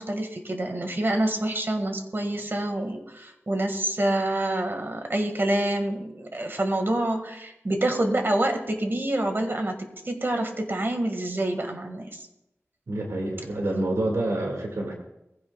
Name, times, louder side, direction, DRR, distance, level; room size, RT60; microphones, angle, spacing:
voice 1, 0.0-9.8 10.0-12.3, right 1 dB, 45° right, 4 dB, 2.0 m, -27 dB
voice 2, 12.9-14.9, right 1 dB, 90° right, 0 dB, 2.2 m, -27 dB
21.0 x 15.5 x 2.4 m, 0.89 s
wide cardioid pair, 70°, 5 cm